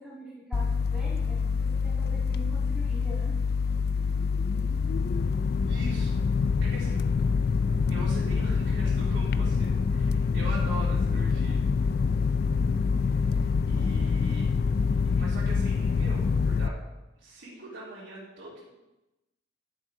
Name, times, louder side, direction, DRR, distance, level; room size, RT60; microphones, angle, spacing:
voice 1, 0.0-3.3, equal, ahead, -7 dB, 1.7 m, -44 dB
sound 1, 0.5-16.7, left 5 dB, 50° left, 0.3 m, -26 dB
voice 2, 5.7-6.2 6.6-7.0 7.9-11.6 13.0-14.5 15.0-16.8 17.2-18.7, right 1 dB, 75° right, -6 dB, 3.5 m, -42 dB
11.5 x 6.4 x 3.8 m, 0.99 s
head